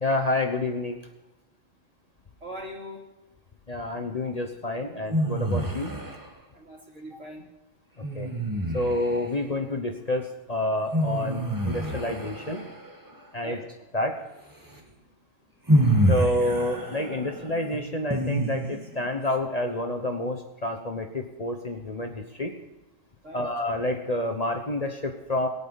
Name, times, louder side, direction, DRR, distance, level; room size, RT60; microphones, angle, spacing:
voice 1, 0.0-1.0 3.7-6.0 8.1-8.3 8.7-12.6 13.3-13.6 13.9-14.2 16.1-22.5 23.3-25.5, left 1 dB, 30° left, 4 dB, 1.0 m, -28 dB
voice 2, 2.4-3.0 6.5-7.5 13.4-13.7 23.2-23.5, equal, 65° right, -1 dB, 3.2 m, -41 dB
sound 1, 5.1-6.3 8.0-9.2 10.9-12.9 14.7-14.8 15.7-19.0, right 1 dB, 15° right, 1.7 m, -26 dB
21.5 x 9.1 x 4.1 m, 1.0 s
omnidirectional pair, 1.4 m